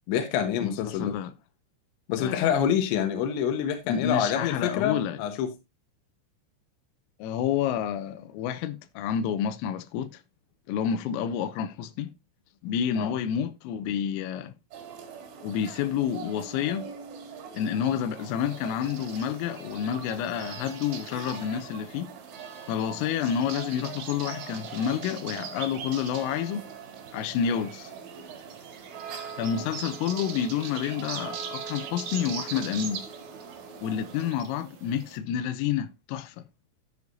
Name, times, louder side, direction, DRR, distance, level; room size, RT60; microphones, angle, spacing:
voice 1, 0.1-1.1 2.1-5.5 13.0-13.1, left 8 dB, 75° left, 3.2 m, -27 dB
voice 2, 0.6-1.3 2.2-2.6 3.9-5.2 7.2-10.2 10.7-12.1 12.6-14.5 15.4-16.9 17.5-22.1 22.7-26.7 27.1-27.9 29.4-33.0 33.8-36.4, left 8 dB, 90° left, 3.3 m, -29 dB
sound 1, 14.7-34.3, right 6 dB, 70° right, 4.6 m, -43 dB
sound 2, 18.2-35.2, right 7 dB, 90° right, 1.6 m, -43 dB
12.5 x 7.3 x 2.6 m
omnidirectional pair, 5.9 m